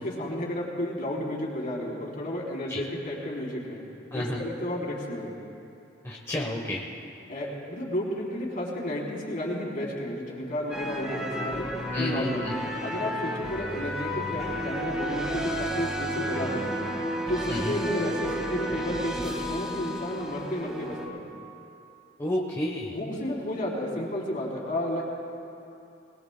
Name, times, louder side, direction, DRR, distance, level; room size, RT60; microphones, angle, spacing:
voice 1, 0.0-3.8 4.1-5.3 7.3-11.7 12.0-12.4 12.8-16.7 17.3-21.2 22.9-25.0, left 1 dB, 50° left, -4 dB, 3.5 m, -32 dB
voice 2, 4.1-4.5 6.0-6.9 11.9-12.5 17.5-17.8 22.2-23.0, left 1 dB, 15° left, -2 dB, 1.0 m, -30 dB
sound 1, 10.7-21.1, equal, 5° right, 1.6 m, -32 dB
22.5 x 20.5 x 2.2 m, 2.7 s
head